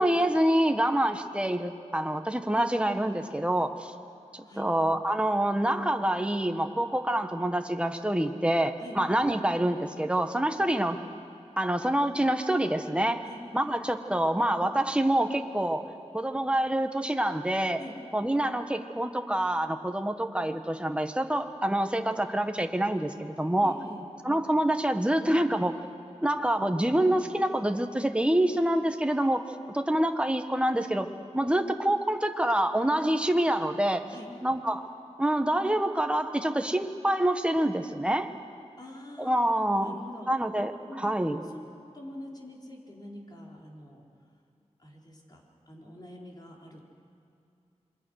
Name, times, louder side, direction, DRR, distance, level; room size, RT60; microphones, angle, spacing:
voice 1, 0.0-3.7 4.6-11.0 11.6-13.2 13.5-15.8 16.1-17.8 18.1-23.8 24.2-25.8 26.2-29.4 29.7-31.1 31.3-34.0 34.4-34.8 35.2-38.3 39.2-39.9 40.3-40.7 41.0-41.4, right 1 dB, 10° right, 6 dB, 1.5 m, -26 dB
voice 2, 23.6-24.1 34.1-34.3 38.8-39.3 39.8-40.3 40.9-41.2 41.5-41.6 41.9-44.0 44.8-46.8, left 1 dB, 35° left, -1 dB, 4.5 m, -45 dB
28.0 x 23.5 x 6.5 m, 2.6 s
wide cardioid pair, 75°, 12 cm